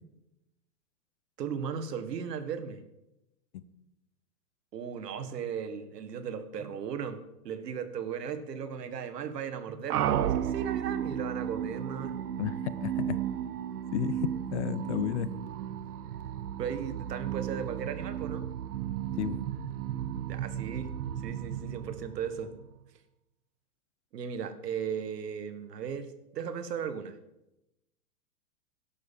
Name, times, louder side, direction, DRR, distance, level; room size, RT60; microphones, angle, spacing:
voice 1, 1.4-2.8 4.7-12.2 16.6-18.5 20.3-20.9 21.2-22.5 24.1-27.2, right 7 dB, 85° right, 11 dB, 1.7 m, -36 dB
sound 1, 9.9-22.8, right 10 dB, 70° right, 0.9 m, -34 dB
voice 2, 12.4-13.2 13.9-15.3 19.2-19.4, left 10 dB, 45° left, 15 dB, 0.8 m, -32 dB
11.5 x 8.3 x 7.3 m, 0.92 s
hypercardioid pair, 165°, 47 cm